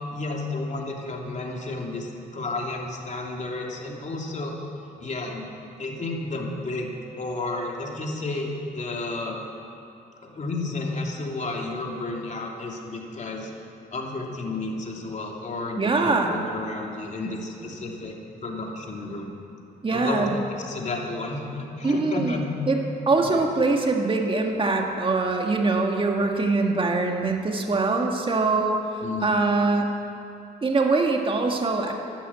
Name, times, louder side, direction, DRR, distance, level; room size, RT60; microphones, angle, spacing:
voice 1, 0.1-4.5 5.0-5.5 5.8-9.4 10.2-13.5 13.9-18.1 18.4-19.3 19.9-22.6 23.2-23.4 29.0-29.4, left 2 dB, 40° left, 0 dB, 3.1 m, -32 dB
voice 2, 15.8-16.3 17.2-17.4 19.8-20.4 21.8-22.8 23.1-28.8 29.2-29.9 30.6-31.9, right 3 dB, 30° right, 2 dB, 1.9 m, -23 dB
12.0 x 12.0 x 8.9 m, 2.6 s
cardioid pair, 70°, 18 cm